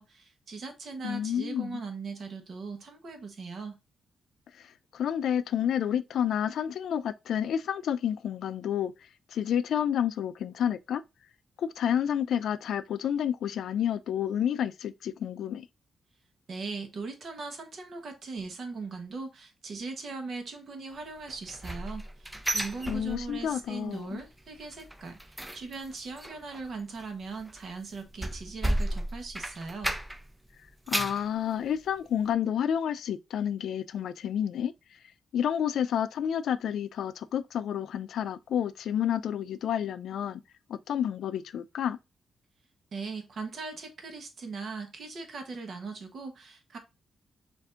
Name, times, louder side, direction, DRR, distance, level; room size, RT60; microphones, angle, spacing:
voice 1, 0.0-3.8 16.5-30.0 42.9-46.8, right 4 dB, 45° right, 1.0 m, -39 dB
voice 2, 1.0-1.8 4.6-8.9 9.3-11.0 11.6-15.7 22.9-24.2 30.9-34.7 35.3-40.4 40.7-42.0, left 9 dB, 70° left, 0.3 m, -30 dB
sound 1, 21.3-23.6 23.9-24.3 24.5-30.3 30.7-31.3 31.8-31.9 32.3-32.4, right 1 dB, 10° right, 0.4 m, -34 dB
6.6 x 2.6 x 2.4 m
wide cardioid pair, 160°, 0 cm